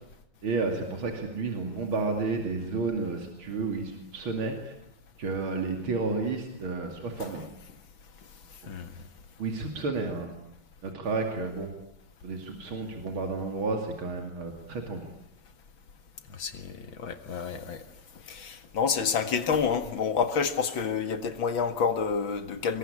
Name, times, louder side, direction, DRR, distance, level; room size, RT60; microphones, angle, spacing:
voice 1, 0.4-4.7 5.2-7.4 9.4-10.3 10.8-11.7 12.2-15.1, right 3 dB, 80° right, 3.5 m, -31 dB
voice 2, 16.3-17.8 18.3-22.8, left 6 dB, 75° left, 2.6 m, -29 dB
25.5 x 21.5 x 9.9 m
omnidirectional pair, 2.2 m